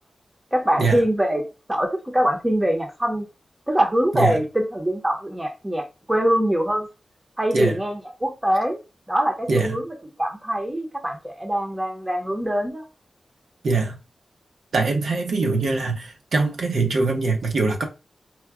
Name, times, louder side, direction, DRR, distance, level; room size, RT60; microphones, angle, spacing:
voice 1, 0.5-3.3 3.7-6.9 7.4-8.8 9.1-9.8 10.2-12.8, equal, 10° right, 0.8 m, -23 dB
voice 2, 9.5-9.8 13.6-14.0 14.7-17.8, right 3 dB, 70° right, 0.9 m, -22 dB
4.6 x 2.3 x 3.5 m
wide cardioid pair, 165°, 0 cm